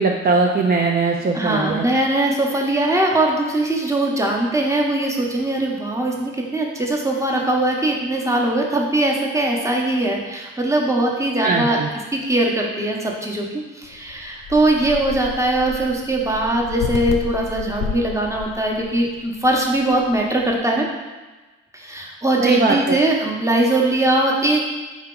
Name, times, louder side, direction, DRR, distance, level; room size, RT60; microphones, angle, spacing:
voice 1, 0.0-1.8 11.4-11.9 22.4-23.0, right 3 dB, 30° right, 0 dB, 0.5 m, -20 dB
voice 2, 1.3-11.8 12.1-20.9 21.7-24.7, right 1 dB, 10° right, -1 dB, 0.9 m, -21 dB
sound 1, 13.8-20.6, left 6 dB, 65° left, 0.6 m, -33 dB
4.7 x 2.7 x 3.8 m, 1.2 s
supercardioid pair, 55°, 35 cm